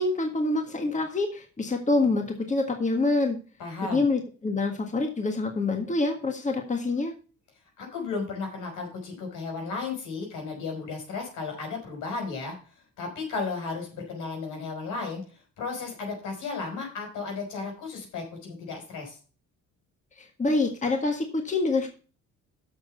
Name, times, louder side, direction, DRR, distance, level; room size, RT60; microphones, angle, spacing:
voice 1, 0.0-3.4 3.8-7.1 20.2-21.9, left 3 dB, 25° left, 4 dB, 1.7 m, -26 dB
voice 2, 3.6-4.0 7.8-12.5 13.0-15.2 15.6-19.2, left 4 dB, 85° left, 2 dB, 5.4 m, -34 dB
7.7 x 6.3 x 6.7 m, 0.38 s
cardioid pair, 90°, 30 cm